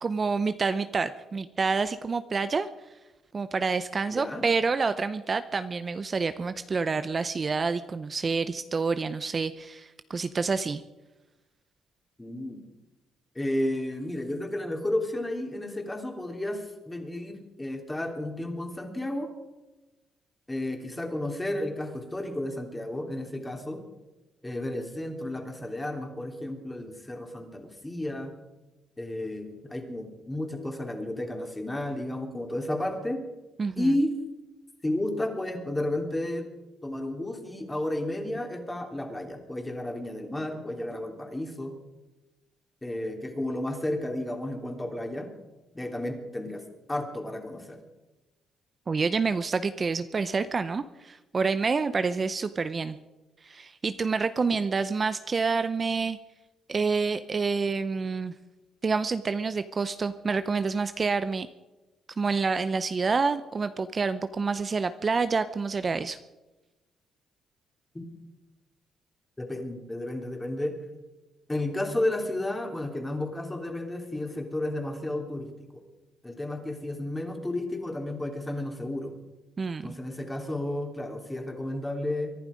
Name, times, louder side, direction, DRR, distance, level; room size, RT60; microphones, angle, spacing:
voice 1, 0.0-2.7 3.3-10.8 33.6-33.9 48.9-53.0 53.4-56.2 56.7-58.3 58.8-61.5 62.2-66.2 79.6-80.0, right 4 dB, 35° right, 12 dB, 0.6 m, -28 dB
voice 2, 4.1-4.4 12.2-12.6 13.3-19.3 20.5-23.8 24.4-28.3 29.0-33.2 33.8-34.2 34.8-36.4 36.8-41.7 42.8-45.3 45.7-46.6 46.9-47.8 67.9-68.0 69.4-70.7 71.5-75.5 76.2-79.1 79.8-82.4, left 1 dB, 15° left, 3 dB, 3.1 m, -32 dB
24.0 x 11.0 x 5.1 m, 1.1 s
cardioid pair, 90°, 0 cm